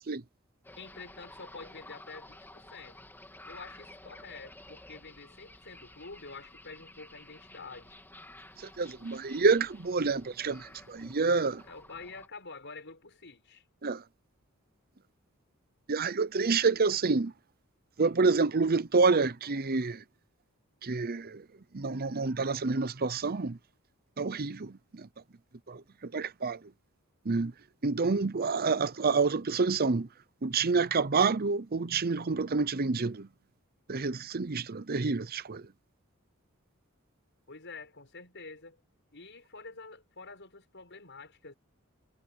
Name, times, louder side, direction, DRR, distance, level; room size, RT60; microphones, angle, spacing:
sound 1, 0.6-12.3, left 1 dB, 10° left, 3.0 m, -52 dB
voice 1, 0.8-3.0 3.4-8.0 11.6-13.6 16.4-16.5 37.5-38.8 39.1-41.5, left 4 dB, 55° left, 7.0 m, -47 dB
voice 2, 8.6-11.6 13.8-14.0 15.9-17.3 18.0-20.0 20.8-21.4 21.7-23.6 24.2-25.1 25.7-26.6 27.2-27.5 27.8-30.1 30.4-33.3 33.9-35.7, right 4 dB, 45° right, 0.7 m, -28 dB
head